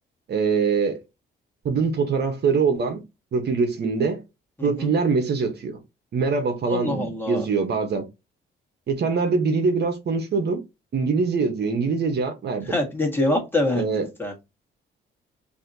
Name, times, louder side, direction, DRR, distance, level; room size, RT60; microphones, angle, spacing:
voice 1, 0.3-1.0 1.6-3.0 3.3-4.2 4.6-5.8 6.1-8.1 8.9-10.6 10.9-12.7 13.7-14.1, right 5 dB, 55° right, 1.1 m, -23 dB
voice 2, 4.6-4.9 6.7-7.5 12.6-14.3, left 1 dB, 10° left, 1.7 m, -25 dB
4.2 x 2.9 x 2.7 m
cardioid pair, 90°, 20 cm